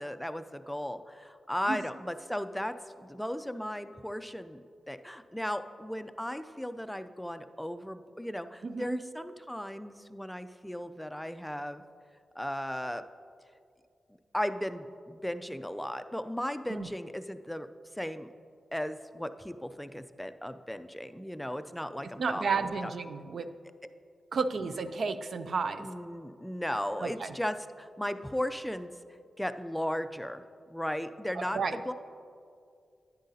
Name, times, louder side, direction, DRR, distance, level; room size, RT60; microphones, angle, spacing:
voice 1, 0.0-11.8 12.4-13.0 14.3-17.7 18.0-18.3 18.7-22.9 24.6-24.8 25.8-28.9 29.4-30.4 30.7-31.9, equal, 5° left, 10 dB, 0.4 m, -36 dB
voice 2, 8.6-9.0 16.7-16.9 22.2-23.5 24.3-25.9 27.0-27.3 31.5-31.8, right 4 dB, 65° right, 10 dB, 0.4 m, -32 dB
10.0 x 9.7 x 2.7 m, 2.3 s
cardioid pair, 75°, 0 cm